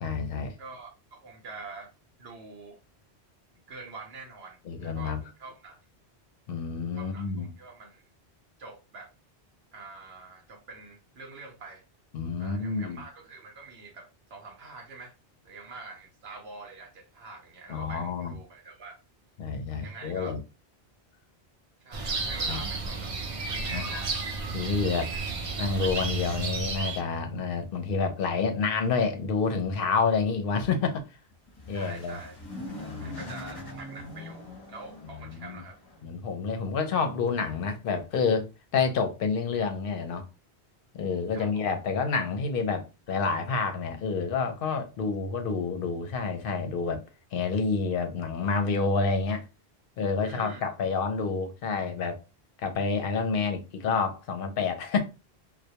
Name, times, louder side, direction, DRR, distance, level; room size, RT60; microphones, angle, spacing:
voice 1, 0.0-0.5 4.7-5.2 6.5-7.5 12.1-13.0 17.7-18.4 19.4-20.4 22.5-22.6 23.7-23.9 24.5-25.1 25.6-31.0 31.7-32.2 32.8-33.2 35.3-35.6 36.0-38.5 38.7-40.3 40.9-47.0 47.3-49.5 50.0-52.2 52.6-55.0, left 5 dB, 65° left, 0.7 m, -28 dB
voice 2, 0.6-1.9 2.2-2.8 3.7-5.8 7.0-8.0 8.6-9.1 9.7-11.8 12.4-15.1 15.4-19.0 19.8-20.4 21.8-24.1 25.1-25.3 31.7-32.4 32.7-34.4 34.7-35.8 41.3-41.7 50.2-50.7, right 3 dB, 75° right, 0.8 m, -45 dB
sound 1, 21.9-27.0, right 3 dB, 55° right, 0.3 m, -32 dB
sound 2, 31.3-36.0, left 1 dB, 25° left, 0.6 m, -43 dB
2.2 x 2.1 x 2.8 m
omnidirectional pair, 1.1 m